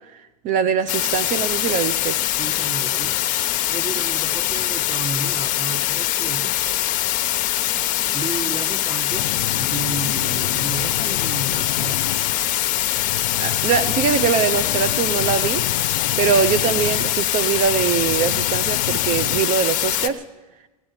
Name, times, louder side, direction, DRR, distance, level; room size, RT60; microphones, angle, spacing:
voice 1, 0.1-2.2 13.4-15.6 16.2-20.2, right 7 dB, 40° right, 11 dB, 0.8 m, -22 dB
sound 1, 0.9-20.1, left 14 dB, 40° left, 1.0 m, -23 dB
voice 2, 2.4-3.2 3.7-6.6 8.1-12.2, right 4 dB, 15° right, 12 dB, 1.0 m, -33 dB
sound 2, 9.1-19.4, left 13 dB, 85° left, 0.4 m, -31 dB
17.5 x 8.8 x 9.0 m, 1.1 s
hypercardioid pair, 110°, 20 cm